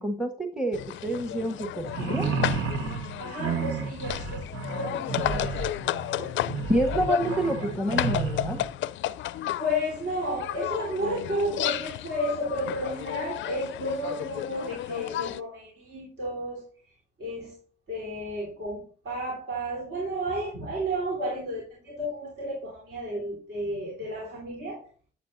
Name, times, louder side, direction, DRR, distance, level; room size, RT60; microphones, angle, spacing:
voice 1, 0.0-2.3 6.7-8.6, equal, 5° right, 1.0 m, -28 dB
sound 1, 0.7-15.4, left 13 dB, 75° left, 0.4 m, -33 dB
sound 2, 1.8-8.7, right 5 dB, 80° right, 1.0 m, -31 dB
voice 2, 2.8-5.6 6.2-6.4 9.1-16.9 17.2-17.6 17.9-24.9, equal, 60° right, 3.6 m, -32 dB
11.0 x 9.4 x 2.6 m
cardioid pair, 90°, 20 cm